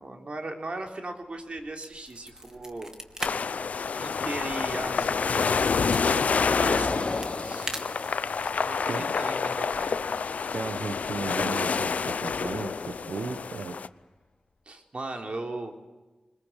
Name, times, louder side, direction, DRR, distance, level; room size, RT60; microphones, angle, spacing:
voice 1, 0.0-2.9 4.0-7.7 8.6-10.2 14.7-15.7, right 2 dB, 50° right, 3 dB, 3.9 m, -38 dB
Car passing by, 1.6-1.7 2.5-2.7 3.0-13.4, left 3 dB, 50° left, 4.8 m, -38 dB
sound 1, 1.7-3.3 3.6-3.8 4.2-6.0 6.8-8.7, right 1 dB, 25° right, 2.9 m, -39 dB
sound 2, 3.2-13.9, left 5 dB, 80° left, 0.7 m, -28 dB
voice 2, 10.5-13.8, right 4 dB, 80° right, 7 dB, 1.3 m, -35 dB
23.0 x 21.5 x 8.3 m, 1.2 s
cardioid pair, 50°, 2 cm